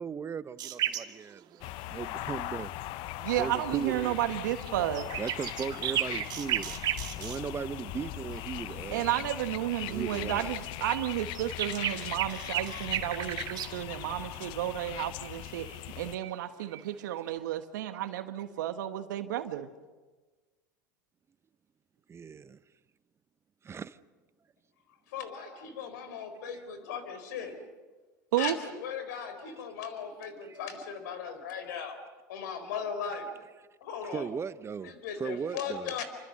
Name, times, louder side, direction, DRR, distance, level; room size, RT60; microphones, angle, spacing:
voice 1, 0.0-2.7 3.4-4.2 5.2-6.8 7.2-9.2 9.9-10.5 22.1-22.6 23.6-24.0 30.4-30.6 34.1-35.9, right 6 dB, 25° right, 0.9 m, -37 dB
sound 1, 0.6-1.9 3.6-4.1 4.4-7.4 8.7-8.8 9.5-9.8 10.4-13.7 15.2-15.3 15.6-15.8 16.2-16.3 16.6-17.4, right 11 dB, 45° right, 2.1 m, -35 dB
sound 2, 1.6-16.2, left 16 dB, 55° left, 0.8 m, -40 dB
voice 2, 3.2-5.1 8.9-15.7 16.0-19.7 28.3-28.6, right 13 dB, 75° right, 1.4 m, -32 dB
voice 3, 25.1-27.6 28.4-32.0 32.3-33.3 33.8-34.3 34.8-36.0, left 7 dB, 75° left, 4.3 m, -38 dB
28.0 x 25.5 x 6.6 m
hypercardioid pair, 90°, 10 cm